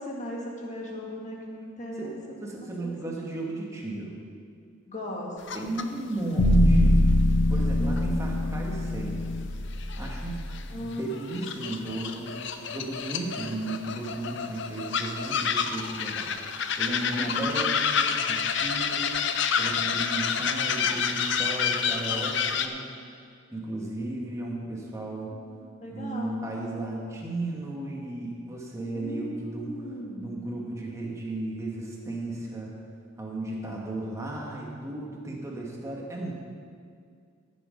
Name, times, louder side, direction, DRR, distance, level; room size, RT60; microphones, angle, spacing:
voice 1, 0.0-2.9 4.9-5.8 7.8-8.7 10.7-11.1 17.0-17.5 25.3-25.5 25.8-26.5 28.9-30.3, equal, 35° left, -2 dB, 1.9 m, -37 dB
voice 2, 2.0-4.2 5.5-7.0 7.5-9.3 10.0-10.4 10.7-12.3 12.7-16.3 16.8-22.9 23.5-25.3 25.9-29.8 30.2-32.7 33.2-36.3, right 2 dB, 15° right, -3 dB, 1.8 m, -35 dB
sound 1, 5.5-5.8 6.2-6.3 8.0-8.1 8.6-8.7 9.8-10.6 10.9-22.7, left 6 dB, 60° left, 0.6 m, -29 dB
sound 2, 6.4-10.6, left 1 dB, 80° left, 1.2 m, -23 dB
14.5 x 7.6 x 5.2 m, 2.3 s
head